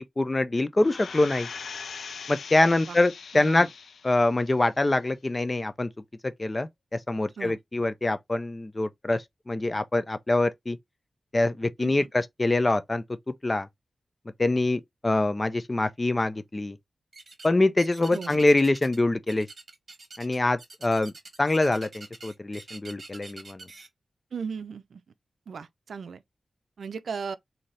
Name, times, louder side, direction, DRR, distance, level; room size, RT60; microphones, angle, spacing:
voice 1, 0.2-1.5 2.3-3.7 4.0-5.9 6.4-6.7 7.1-10.8 11.3-13.0 13.4-13.7 14.4-16.8 17.4-19.5 20.2-21.1 21.4-23.6, left 2 dB, 25° left, 0.5 m, -24 dB
sound 1, 0.8-4.2 4.7-4.8, left 5 dB, 85° left, 0.3 m, -40 dB
voice 2, 3.3-3.7 7.4-7.6 11.8-12.1 18.1-18.4 24.3-25.0 25.5-26.2 26.8-27.4, right 6 dB, 80° right, 0.4 m, -36 dB
sound 2, 17.1-17.5 17.8-19.0 19.3-23.9, right 3 dB, 45° right, 1.3 m, -46 dB
4.0 x 2.7 x 3.1 m
wide cardioid pair, 140°, 0 cm